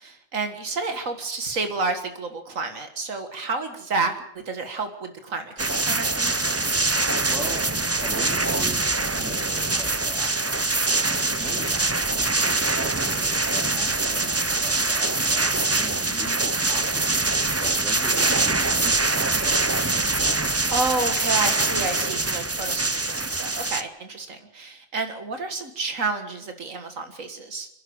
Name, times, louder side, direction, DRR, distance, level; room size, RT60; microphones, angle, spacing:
voice 1, 0.0-6.3 11.3-11.6 16.1-16.4 20.3-27.7, right 3 dB, 80° right, 7 dB, 2.1 m, -30 dB
sound 1, 5.6-23.8, right 2 dB, 20° right, 0.4 m, -24 dB
voice 2, 6.9-7.7 8.0-10.7 11.0-17.3 17.6-19.7, right 1 dB, ahead, 1 dB, 3.5 m, -41 dB
27.5 x 11.0 x 8.7 m, 0.76 s
omnidirectional pair, 1.4 m